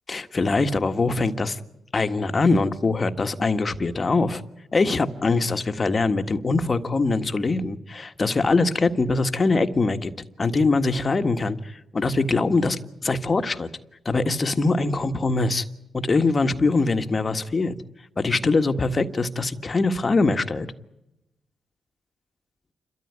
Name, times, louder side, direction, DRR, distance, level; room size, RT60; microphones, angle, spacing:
voice 1, 0.1-1.6 1.9-4.4 4.7-10.1 10.4-13.7 14.0-15.6 15.9-17.8 18.2-20.7, left 3 dB, 35° left, 9 dB, 1.6 m, -23 dB
29.5 x 13.5 x 9.5 m, 0.93 s
cardioid pair, 70°, 0 cm